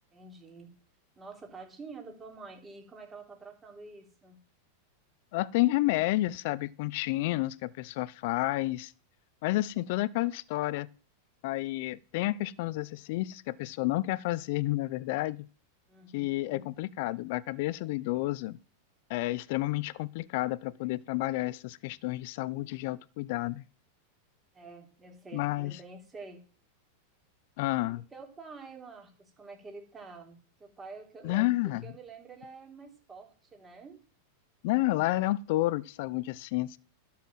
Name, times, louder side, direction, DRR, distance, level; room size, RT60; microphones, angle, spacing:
voice 1, 0.1-0.7 1.2-4.4 15.9-16.7 24.5-26.4 28.1-34.0, right 4 dB, 15° right, 3.1 m, -48 dB
voice 2, 5.3-8.9 9.4-10.9 11.4-15.5 16.1-18.6 19.1-23.6 25.3-25.7 27.6-28.0 31.2-31.8 34.6-36.8, left 18 dB, 60° left, 0.5 m, -30 dB
12.0 x 5.6 x 7.4 m
supercardioid pair, 135°, 0 cm